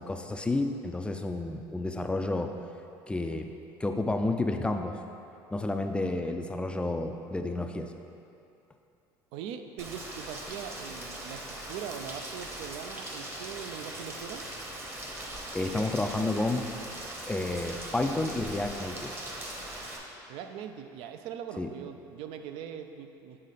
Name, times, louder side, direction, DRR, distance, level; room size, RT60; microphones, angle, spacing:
voice 1, 0.0-2.5 3.1-3.5 3.8-5.0 5.5-7.9 15.5-16.6 17.3-19.1 21.6-21.7, left 2 dB, 10° left, 5 dB, 0.3 m, -30 dB
voice 2, 9.3-14.5 20.3-23.4, right 8 dB, 70° right, 7 dB, 0.4 m, -41 dB
Rain, 9.8-20.0, right 1 dB, 25° right, 0.9 m, -40 dB
6.7 x 3.6 x 4.1 m, 2.7 s
supercardioid pair, 105°, 10 cm